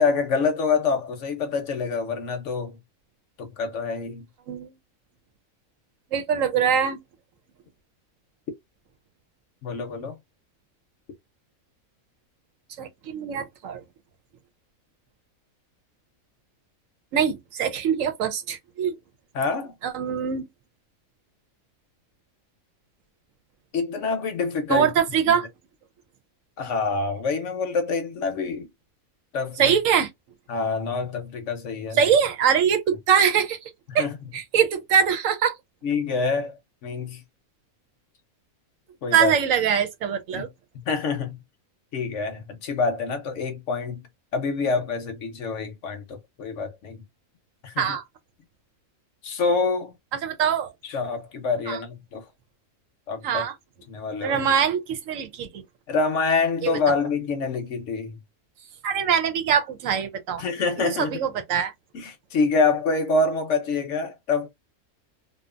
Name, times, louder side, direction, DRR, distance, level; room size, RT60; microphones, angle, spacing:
voice 1, 0.0-2.8 3.4-4.2 9.6-10.1 19.3-19.7 23.7-24.9 26.6-28.7 29.3-29.7 30.5-32.0 33.9-34.2 35.8-37.2 39.0-39.3 40.3-40.5 40.9-41.4 41.9-44.0 44.3-47.0 47.6-47.8 49.2-49.9 50.8-52.2 53.1-53.4 53.9-54.4 55.9-58.2 60.4-61.2 61.9-64.5, left 4 dB, 65° left, 0.9 m, -26 dB
voice 2, 6.1-7.0 12.8-13.8 17.1-18.9 19.8-20.5 24.7-25.4 29.6-30.1 31.9-33.6 33.9-34.1 34.3-35.5 39.1-40.5 47.8-48.0 50.1-50.7 51.7-51.8 53.2-53.5 54.2-55.6 56.6-56.9 58.8-60.4 60.8-61.7, right 7 dB, 70° right, 1.0 m, -23 dB
2.7 x 2.3 x 2.4 m
omnidirectional pair, 1.5 m